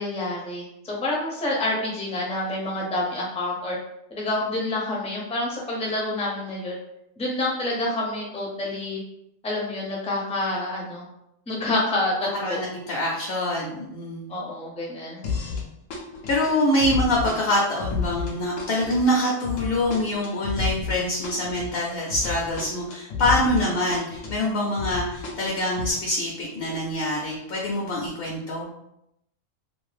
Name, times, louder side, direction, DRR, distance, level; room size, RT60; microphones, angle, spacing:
voice 1, 0.0-3.8 4.1-6.7 7.2-9.0 9.4-11.0 11.5-12.6 14.3-15.2, left 2 dB, 10° left, -3 dB, 0.4 m, -28 dB
voice 2, 12.4-14.3 16.3-28.7, left 1 dB, 60° left, -3 dB, 0.7 m, -25 dB
sound 1, 15.2-15.6 15.9-23.6 23.9-25.9, left 5 dB, 85° left, 1.0 m, -31 dB
2.6 x 2.4 x 3.2 m, 0.82 s
omnidirectional pair, 1.3 m